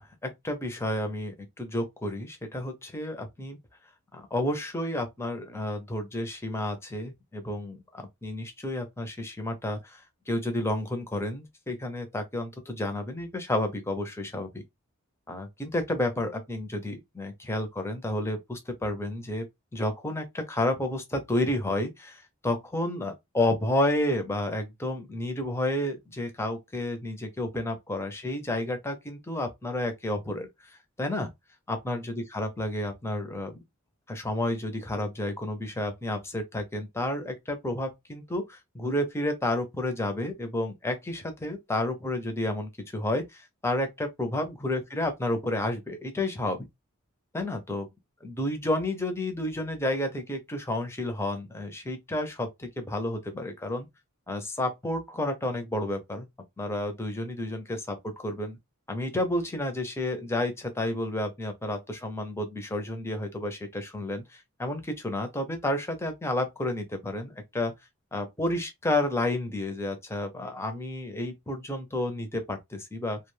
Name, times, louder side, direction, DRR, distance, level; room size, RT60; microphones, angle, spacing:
voice 1, 0.0-3.6 4.1-14.6 15.3-19.5 19.7-30.5 31.0-31.3 31.7-33.6 34.1-46.7 47.3-47.9 48.2-53.9 54.3-56.3 56.6-58.6 58.9-67.7 68.1-73.2, left 1 dB, 10° left, 0.6 m, -31 dB
2.3 x 2.2 x 3.1 m
head